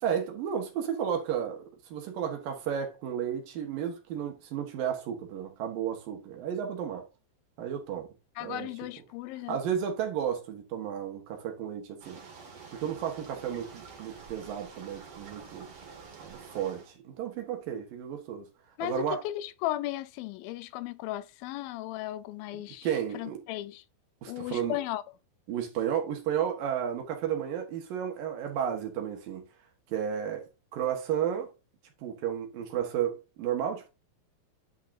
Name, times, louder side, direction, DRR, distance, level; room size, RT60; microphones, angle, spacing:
voice 1, 0.0-7.1 7.6-8.1 8.4-8.7 9.5-12.2 12.7-15.7 16.2-18.5 18.8-19.2 22.5-23.4 24.2-24.8 25.5-29.5 29.9-30.4 30.7-31.5 32.0-33.9, right 9 dB, 65° right, 3.0 m, -33 dB
voice 2, 8.4-9.6 18.8-22.9 23.1-23.8 24.3-25.0, left 15 dB, 80° left, 2.2 m, -35 dB
sound 1, 12.0-16.9, right 5 dB, 45° right, 2.6 m, -48 dB
10.0 x 5.7 x 2.7 m
omnidirectional pair, 4.5 m